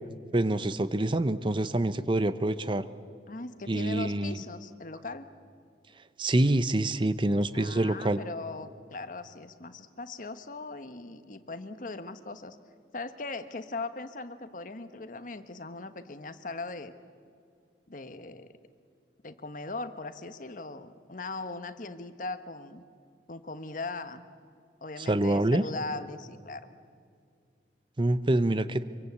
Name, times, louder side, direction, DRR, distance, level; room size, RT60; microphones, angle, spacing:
voice 1, 0.3-2.8 3.7-4.3 6.2-8.2 25.1-25.6 28.0-28.8, right 1 dB, 30° right, 13 dB, 0.7 m, -26 dB
voice 2, 3.3-5.2 7.5-12.6 12.9-16.9 17.9-18.5 19.2-22.8 23.3-24.3 24.8-26.7, left 3 dB, 50° left, 10 dB, 1.2 m, -39 dB
25.5 x 24.0 x 8.3 m, 2.2 s
head